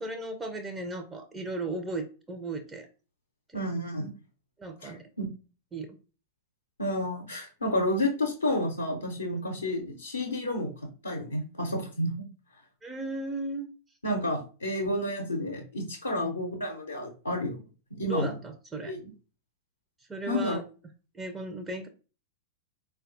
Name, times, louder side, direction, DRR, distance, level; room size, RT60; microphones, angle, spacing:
voice 1, 0.0-2.9 4.6-5.0 5.7-5.9 12.8-13.7 16.1-16.3 18.0-18.9 20.1-20.6 21.1-21.9, right 2 dB, 15° right, 5 dB, 0.4 m, -36 dB
voice 2, 3.5-4.2 4.8-5.2 6.8-10.7 11.0-12.1 14.0-17.6 17.9-18.3 18.8-19.1 20.3-20.6, left 1 dB, 80° left, 1 dB, 0.5 m, -30 dB
4.0 x 2.2 x 2.4 m, 0.35 s
figure-of-eight pair, 95°, 0 cm